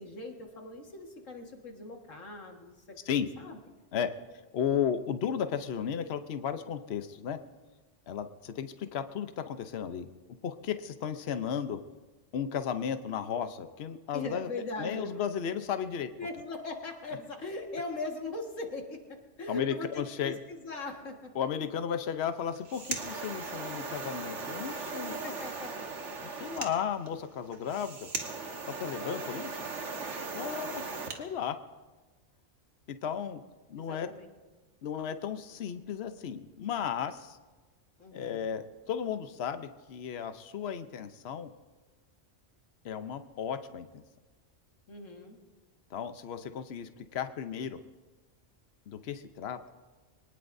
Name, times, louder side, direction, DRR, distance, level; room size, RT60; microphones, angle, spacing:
voice 1, 0.0-3.6 14.1-15.2 16.2-21.5 24.9-25.9 33.8-34.3 38.0-38.5 44.9-45.4, left 2 dB, 85° left, 2 dB, 2.1 m, -40 dB
voice 2, 4.5-7.4 8.1-10.1 10.4-11.8 12.3-14.5 14.8-16.1 19.5-20.4 21.3-25.2 26.2-28.1 28.6-29.5 30.3-30.9 31.2-31.6 33.0-33.4 33.7-34.1 34.8-37.4 38.1-41.5 42.8-44.0 45.9-47.8 48.9-49.6, left 8 dB, 60° left, 9 dB, 1.0 m, -34 dB
sound 1, 22.4-31.2, right 4 dB, 70° right, 1.7 m, -38 dB
25.0 x 19.0 x 2.7 m, 1.3 s
omnidirectional pair, 1.3 m